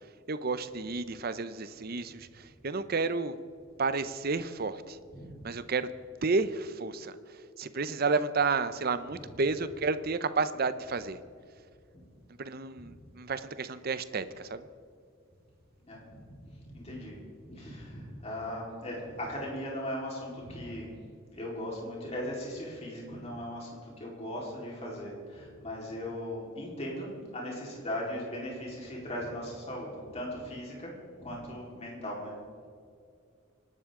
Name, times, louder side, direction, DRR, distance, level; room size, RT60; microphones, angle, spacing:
voice 1, 0.3-3.3 3.8-5.0 5.4-5.9 6.2-7.2 7.6-11.2 12.4-14.7, right 4 dB, 50° right, 13 dB, 0.7 m, -31 dB
voice 2, 15.9-16.2 16.6-17.2 17.4-20.9 21.3-27.1 27.3-30.9 31.2-32.3, left 1 dB, 30° left, -3 dB, 4.1 m, -38 dB
25.5 x 12.0 x 3.8 m, 2.3 s
head